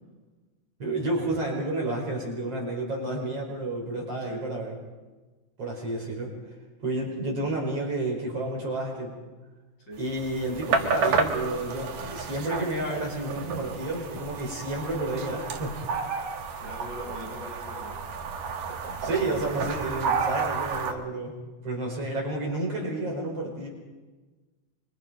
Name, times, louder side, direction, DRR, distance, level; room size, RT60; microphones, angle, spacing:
voice 1, 0.8-4.7 5.6-6.3 6.8-9.1 10.0-15.8 19.0-23.7, right 2 dB, 45° right, -1 dB, 6.2 m, -30 dB
sound 1, 10.1-20.9, right 5 dB, 80° right, 3.4 m, -31 dB
voice 2, 16.6-18.0, equal, 30° left, -3 dB, 7.7 m, -41 dB
27.5 x 24.5 x 5.3 m, 1.2 s
omnidirectional pair, 3.7 m